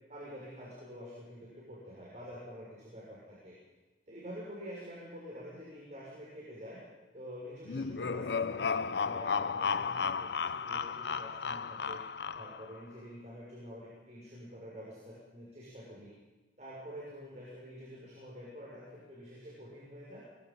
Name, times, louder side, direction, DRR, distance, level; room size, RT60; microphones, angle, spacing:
voice 1, 0.1-3.6 4.1-6.8 7.1-12.0 12.3-16.1 16.6-20.2, equal, 40° right, -6 dB, 6.5 m, -47 dB
sound 1, 7.7-12.8, left 5 dB, 65° left, 0.6 m, -34 dB
24.0 x 22.5 x 5.6 m, 1.2 s
head